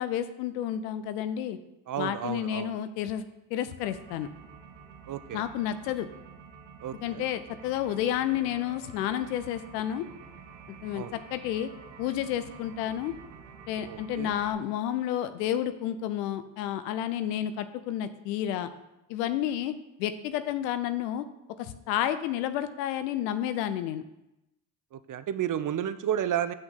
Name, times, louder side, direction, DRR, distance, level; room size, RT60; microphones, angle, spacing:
voice 1, 0.0-1.6 2.0-3.2 3.5-4.3 5.3-6.1 6.9-10.1 10.7-11.7 12.0-13.1 13.7-18.7 19.1-21.3 21.6-24.0, left 11 dB, 90° left, 12 dB, 0.6 m, -31 dB
voice 2, 1.9-2.7 5.1-5.4 6.8-7.2 10.9-11.1 13.8-14.4 24.9-26.5, right 10 dB, 40° right, 13 dB, 0.6 m, -32 dB
sound 1, 3.8-14.5, right 6 dB, 90° right, 1.0 m, -49 dB
7.5 x 5.9 x 3.9 m, 0.91 s
hypercardioid pair, 55°, 47 cm